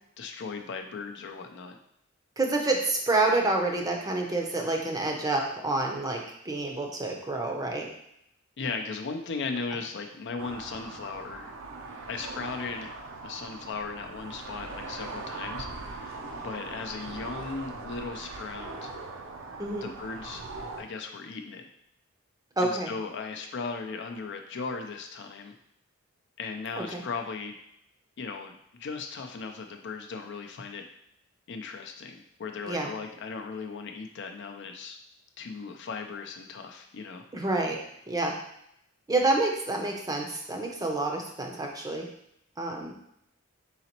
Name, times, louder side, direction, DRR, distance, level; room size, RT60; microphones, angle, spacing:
voice 1, 0.2-1.8 8.6-11.5 12.1-12.9 13.2-18.9 19.8-20.4 20.8-21.6 22.6-25.5 26.4-27.6 28.2-30.8 31.5-35.0 35.4-37.2, left 4 dB, 60° left, 4 dB, 0.5 m, -37 dB
voice 2, 2.4-7.9 19.6-19.9 22.6-22.9 26.9-27.0 32.7-32.9 37.3-37.8 38.1-38.4 39.1-42.1 42.6-42.9, right 2 dB, 20° right, 1 dB, 0.6 m, -28 dB
sound 1, 10.4-20.8, right 3 dB, 65° right, 0.5 m, -40 dB
4.0 x 3.9 x 2.9 m, 0.76 s
head